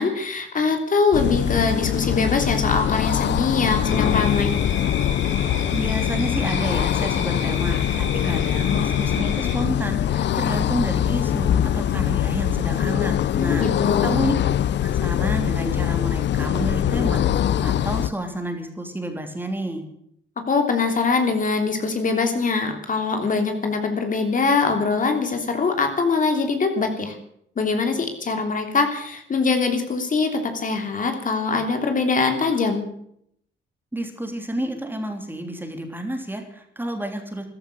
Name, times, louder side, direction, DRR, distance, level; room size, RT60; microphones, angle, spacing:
voice 1, 0.0-4.5 13.3-14.1 20.5-27.2 27.6-32.8, left 4 dB, 40° left, 5 dB, 3.3 m, -23 dB
sound 1, 1.1-18.1, left 10 dB, 65° left, 0.7 m, -23 dB
sound 2, 3.8-9.6, left 4 dB, 80° left, 4.7 m, -31 dB
voice 2, 5.7-14.3 14.8-19.8 33.9-37.5, right 1 dB, 10° right, 4 dB, 3.3 m, -30 dB
14.5 x 12.5 x 7.9 m, 0.69 s
cardioid pair, 90°, 20 cm